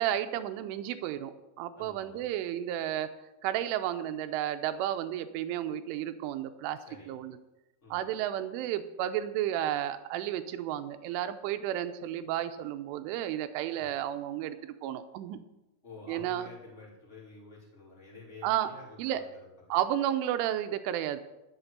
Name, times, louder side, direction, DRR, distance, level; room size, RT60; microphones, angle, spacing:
voice 1, 0.0-3.1 3.4-6.8 7.1-7.4 7.9-15.4 16.1-16.5 18.4-18.7 19.0-19.2 19.7-21.2, right 11 dB, 80° right, 10 dB, 3.1 m, -32 dB
voice 2, 1.8-2.2 6.9-7.1 7.8-8.1 13.7-13.9 15.8-19.8, left 3 dB, 15° left, -4 dB, 2.7 m, -50 dB
11.5 x 8.0 x 6.7 m, 0.99 s
omnidirectional pair, 5.7 m